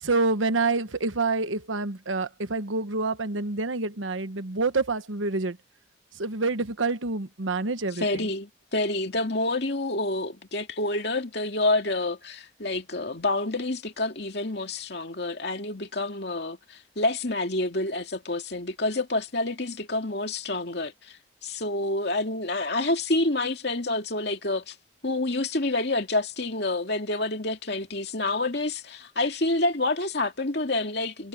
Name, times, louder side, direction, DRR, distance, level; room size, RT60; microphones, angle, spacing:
voice 1, 0.0-5.6 6.2-8.3, right 3 dB, 90° right, 1.2 m, -27 dB
voice 2, 7.9-21.2 21.4-24.7 25.0-31.3, left 2 dB, 55° left, 2.6 m, -28 dB
head